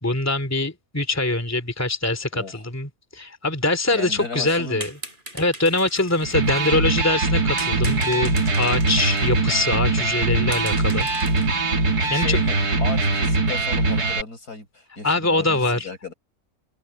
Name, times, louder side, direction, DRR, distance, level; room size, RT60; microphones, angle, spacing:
voice 1, 0.0-4.9 5.3-11.1 12.1-12.4 15.0-15.9, left 2 dB, 10° left, 2.7 m, -23 dB
voice 2, 2.3-2.6 3.9-4.8 12.0-16.1, left 3 dB, 80° left, 6.9 m, -35 dB
sound 1, 4.7-6.9 7.6-9.4 9.7-9.8 10.2-10.3 10.5-11.6 12.0-12.2, right 2 dB, 30° right, 4.8 m, -39 dB
Electric guitar, 6.2-14.2, right 2 dB, 90° right, 3.3 m, -22 dB
omnidirectional pair, 1.6 m